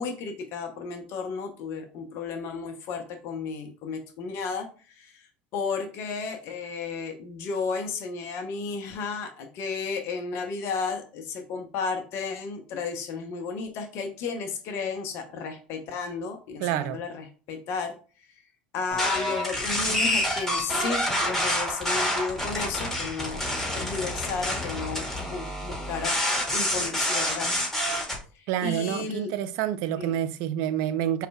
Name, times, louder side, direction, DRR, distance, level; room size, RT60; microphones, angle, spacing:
voice 1, 0.0-17.9 18.7-23.4 23.7-26.2 26.5-27.5 27.9-28.0 28.3-29.3 30.0-30.2, left 4 dB, 60° left, 0.8 m, -33 dB
voice 2, 16.6-17.0 28.5-31.3, right 11 dB, 65° right, 0.5 m, -28 dB
sound 1, 18.9-28.2, left 1 dB, 10° left, 2.2 m, -28 dB
5.1 x 3.2 x 2.3 m
hypercardioid pair, 70°, 5 cm